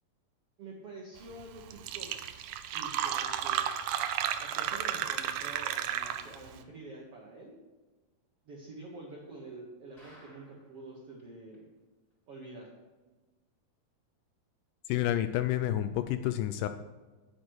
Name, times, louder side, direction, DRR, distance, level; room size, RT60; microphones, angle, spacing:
voice 1, 0.6-2.1 2.7-3.7 4.4-7.6 8.5-11.6 12.3-12.7, right 2 dB, 55° right, -2 dB, 1.8 m, -47 dB
Fill (with liquid), 1.4-1.5 1.7-6.5, right 10 dB, 85° right, 1.7 m, -33 dB
sound 1, 10.0-10.8 11.2-11.3 11.5-11.6 12.1-12.2, equal, 10° left, 3.9 m, -57 dB
voice 2, 14.9-16.7, left 12 dB, 85° left, 10 dB, 1.8 m, -29 dB
9.4 x 9.3 x 4.6 m, 1.2 s
omnidirectional pair, 4.2 m